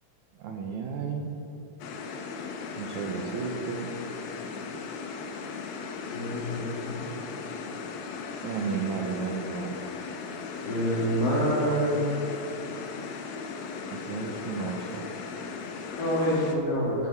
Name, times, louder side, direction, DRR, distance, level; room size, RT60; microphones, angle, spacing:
voice 1, 0.4-1.4 2.8-3.9 8.4-9.8 13.9-15.1, right 5 dB, 70° right, 2 dB, 2.1 m, -33 dB
sound 1, 1.8-16.6, left 5 dB, 90° left, 2.9 m, -37 dB
voice 2, 6.1-7.0 10.6-12.0 16.0-17.0, equal, 70° left, -6 dB, 5.5 m, -26 dB
12.0 x 11.0 x 6.0 m, 3.0 s
omnidirectional pair, 4.1 m